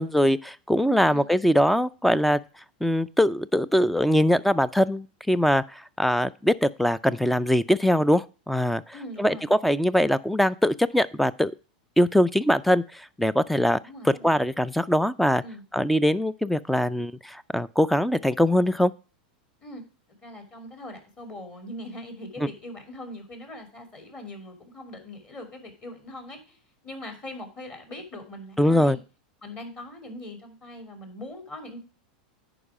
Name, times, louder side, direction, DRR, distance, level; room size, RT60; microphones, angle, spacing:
voice 1, 0.0-2.4 2.8-11.5 12.0-13.8 14.0-15.4 15.7-18.9 28.6-29.0, equal, ahead, 19 dB, 0.4 m, -22 dB
voice 2, 0.9-1.3 8.9-9.5 13.8-14.3 15.4-15.6 19.6-19.8 20.2-26.6 26.8-29.0 29.4-31.8, left 1 dB, 25° left, 5 dB, 3.0 m, -41 dB
10.0 x 4.9 x 4.8 m, 0.36 s
supercardioid pair, 125°, 5 cm